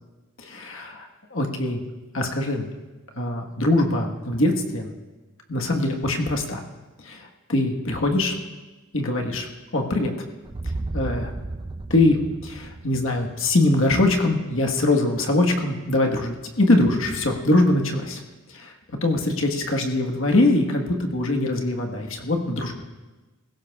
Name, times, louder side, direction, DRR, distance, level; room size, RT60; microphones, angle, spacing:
voice 1, 0.4-1.8 2.1-2.7 3.1-4.9 5.5-6.6 7.0-8.4 8.9-9.5 9.7-10.1 10.9-11.3 11.9-18.2 18.5-22.8, left 2 dB, 60° left, 2 dB, 1.5 m, -22 dB
sound 1, 10.5-14.5, right 2 dB, 20° right, 0.3 m, -34 dB
20.5 x 16.5 x 2.4 m, 1.2 s
head